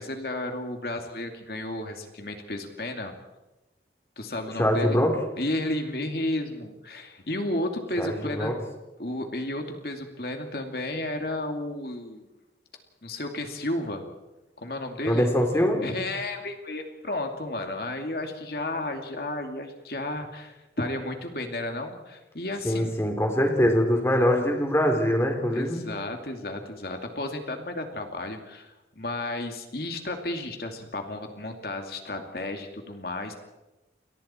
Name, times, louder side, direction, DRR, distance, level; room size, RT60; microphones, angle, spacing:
voice 1, 0.0-3.1 4.2-5.0 5.4-8.5 9.0-12.3 13.0-14.1 14.6-15.3 15.8-23.0 25.5-33.3, left 1 dB, 60° left, 4 dB, 2.6 m, -33 dB
voice 2, 4.6-5.2 8.0-8.5 15.1-15.8 22.6-25.9, equal, 15° left, 2 dB, 3.5 m, -23 dB
30.0 x 23.0 x 4.5 m, 1.0 s
head